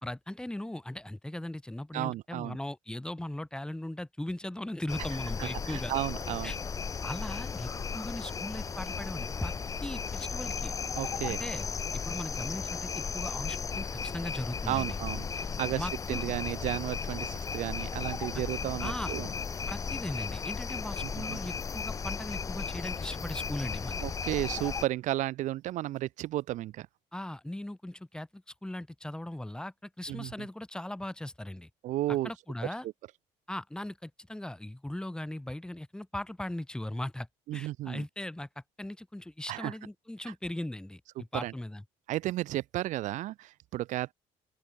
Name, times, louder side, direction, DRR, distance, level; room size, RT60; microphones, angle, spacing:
voice 1, 0.0-5.9 6.4-6.6 7.0-9.5 9.8-10.7 11.3-11.7 11.9-15.0 15.7-16.2 18.8-19.1 19.7-24.1 27.1-31.7 32.1-32.9 33.5-37.3 37.5-41.8, left 1 dB, 5° left, 3.2 m, -38 dB
voice 2, 1.9-2.6 5.4-6.5 11.0-11.4 14.7-19.3 21.0-21.4 24.0-26.9 30.1-30.3 31.8-32.3 37.5-38.0 39.5-39.7 41.4-41.5 42.1-44.1, right 15 dB, 65° right, 1.8 m, -33 dB
sound 1, 4.9-24.9, left 5 dB, 25° left, 0.7 m, -35 dB
open air
cardioid pair, 105°, 13 cm